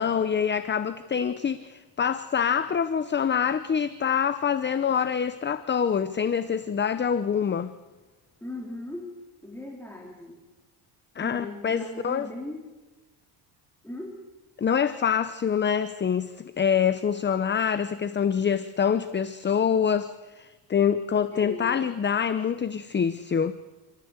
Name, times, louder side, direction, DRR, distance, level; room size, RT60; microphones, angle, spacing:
voice 1, 0.0-7.7 11.2-12.3 14.6-20.1 20.4-23.5, left 7 dB, 25° left, 0.8 m, -25 dB
voice 2, 8.4-9.1 9.4-10.4 11.2-12.6 13.8-14.2 21.3-21.8, left 1 dB, 5° left, 3.6 m, -38 dB
28.5 x 14.5 x 8.1 m
cardioid pair, 115°, 47 cm